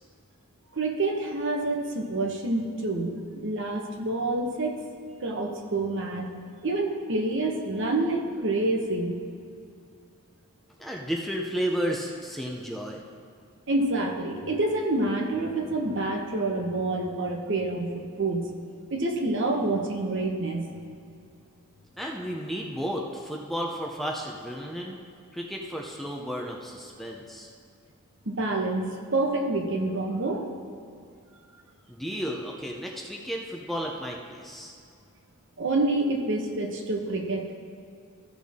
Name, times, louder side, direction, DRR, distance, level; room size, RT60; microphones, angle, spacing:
voice 1, 0.7-3.2 3.4-4.8 5.2-6.3 6.6-9.1 13.7-18.5 18.9-20.7 28.2-30.5 35.6-37.5, right 2 dB, 55° right, 2 dB, 1.1 m, -27 dB
voice 2, 10.8-13.0 22.0-25.0 25.3-27.5 31.9-34.8, equal, ahead, -1 dB, 0.6 m, -33 dB
15.0 x 5.9 x 3.6 m, 2.4 s
head